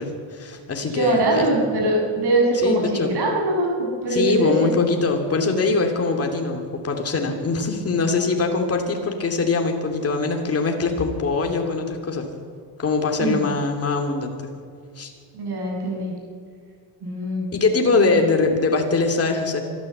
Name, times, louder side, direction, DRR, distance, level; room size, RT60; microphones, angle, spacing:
voice 1, 0.0-1.5 2.6-3.1 4.1-12.3 12.8-14.5 15.0-15.1 17.5-19.6, left 3 dB, 30° left, 3 dB, 2.8 m, -22 dB
voice 2, 0.9-4.7 13.2-13.5 15.3-16.1 17.0-17.5 17.9-18.2, right 1 dB, 60° right, -1 dB, 7.0 m, -22 dB
24.5 x 13.0 x 8.0 m, 2.3 s
cardioid pair, 145°, 45 cm